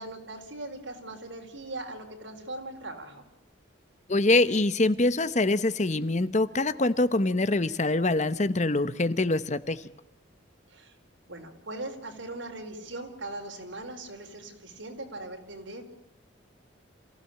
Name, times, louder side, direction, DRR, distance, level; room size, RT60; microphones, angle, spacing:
voice 1, 0.0-3.2 10.7-11.0 11.3-15.8, right 2 dB, 80° right, 4 dB, 4.7 m, -40 dB
voice 2, 4.1-9.8, left 2 dB, 35° left, 13 dB, 1.0 m, -24 dB
27.5 x 16.5 x 8.6 m, 0.92 s
head